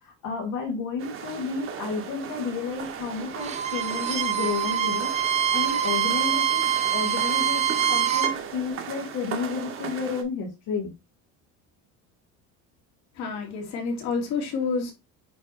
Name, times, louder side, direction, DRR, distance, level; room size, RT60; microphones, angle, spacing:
voice 1, 0.0-10.9, left 5 dB, 70° left, 2.2 m, -32 dB
sound 1, 1.0-10.2, right 7 dB, 40° right, 1.2 m, -38 dB
Bowed string instrument, 3.4-8.4, right 9 dB, 20° right, 0.5 m, -25 dB
voice 2, 13.2-14.9, left 4 dB, 55° left, 2.3 m, -28 dB
8.5 x 3.3 x 3.9 m
cardioid pair, 175°, 34 cm